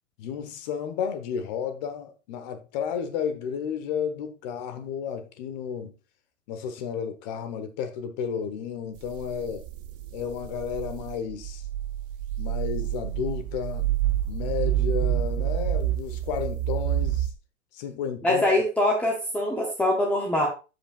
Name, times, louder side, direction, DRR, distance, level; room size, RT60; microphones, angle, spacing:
voice 1, 0.2-5.9 6.5-9.6 10.1-11.6 12.4-13.9 14.3-17.3 17.7-18.5, left 7 dB, 35° left, 1.2 m, -32 dB
sound 1, 9.0-17.3, right 12 dB, 20° right, 0.4 m, -28 dB
voice 2, 18.2-20.5, left 1 dB, 5° left, 0.8 m, -23 dB
13.5 x 5.1 x 2.5 m
hypercardioid pair, 150°, 38 cm